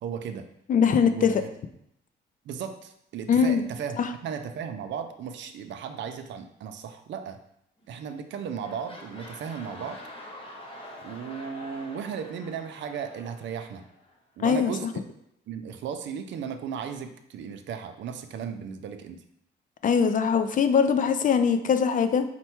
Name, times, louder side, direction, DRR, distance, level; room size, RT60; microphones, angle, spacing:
voice 1, 0.0-0.5 1.0-1.5 2.5-7.4 7.9-10.0 11.0-13.9 14.4-14.9 15.5-19.2, right 7 dB, 70° right, 8 dB, 0.5 m, -35 dB
voice 2, 0.7-1.3 3.3-3.6 4.0-4.1 14.4-14.7 19.8-22.2, left 6 dB, 45° left, 9 dB, 0.4 m, -22 dB
sound 1, 7.8-8.1 8.3-14.2 14.8-14.9, left 1 dB, 25° left, 0.9 m, -46 dB
4.3 x 2.2 x 4.3 m, 0.75 s
cardioid pair, 90°, 20 cm